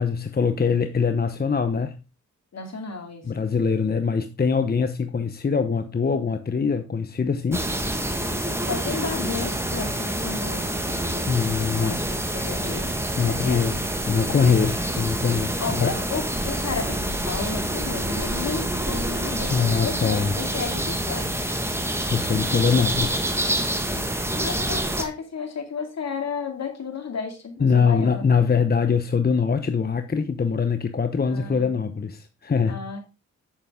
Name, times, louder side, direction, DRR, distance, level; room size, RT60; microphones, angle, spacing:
voice 1, 0.0-2.0 3.2-7.7 11.3-12.0 13.2-13.8 14.1-15.9 19.5-20.4 22.1-23.2 27.6-32.8, left 5 dB, 30° left, 0.9 m, -23 dB
voice 2, 2.5-3.3 8.7-12.9 13.3-13.6 14.3-14.7 15.6-21.4 24.4-28.2 31.3-31.8 32.7-33.1, left 5 dB, 60° left, 2.5 m, -33 dB
sound 1, 7.5-25.1, right 1 dB, 10° right, 1.6 m, -27 dB
8.0 x 7.0 x 3.6 m
cardioid pair, 60°, 30 cm